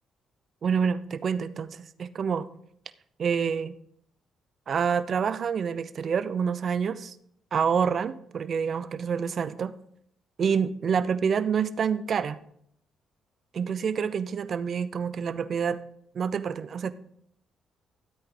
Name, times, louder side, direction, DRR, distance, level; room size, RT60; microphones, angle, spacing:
voice 1, 0.6-2.5 3.2-3.8 4.7-7.2 7.5-9.7 10.4-12.4 13.5-15.8 16.1-16.9, right 6 dB, 50° right, 14 dB, 0.6 m, -27 dB
13.0 x 8.4 x 3.8 m, 0.67 s
cardioid pair, 90°, 0 cm